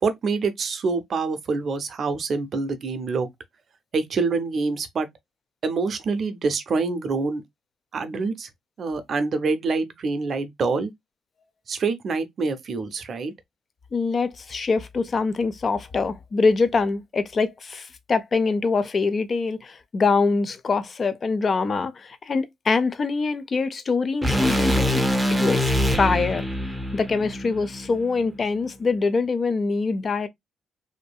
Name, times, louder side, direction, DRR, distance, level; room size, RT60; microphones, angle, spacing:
voice 1, 0.0-3.3 3.9-5.1 5.6-7.4 7.9-8.5 8.8-10.9 11.7-13.3, right 4 dB, 50° right, 0.5 m, -26 dB
voice 2, 13.9-25.0 25.4-26.4 26.9-30.3, left 4 dB, 40° left, 0.5 m, -24 dB
sound 1, 24.2-28.4, left 1 dB, 5° right, 0.6 m, -24 dB
2.6 x 2.6 x 2.3 m
cardioid pair, 90°, 0 cm